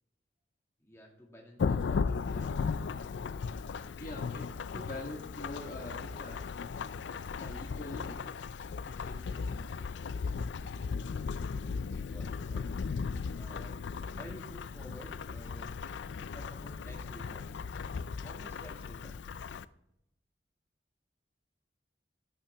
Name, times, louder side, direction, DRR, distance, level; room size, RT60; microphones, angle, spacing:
voice 1, 0.8-2.5 11.8-12.8 13.3-15.8 16.0-17.6 18.2-19.2, equal, 15° left, -1 dB, 2.0 m, -52 dB
Thunderstorm / Rain, 1.6-19.6, left 5 dB, 80° left, 0.4 m, -36 dB
voice 2, 4.0-6.4 7.3-8.2 8.8-9.4, left 1 dB, 50° left, 1 dB, 1.3 m, -44 dB
13.0 x 8.6 x 3.4 m, 0.81 s
head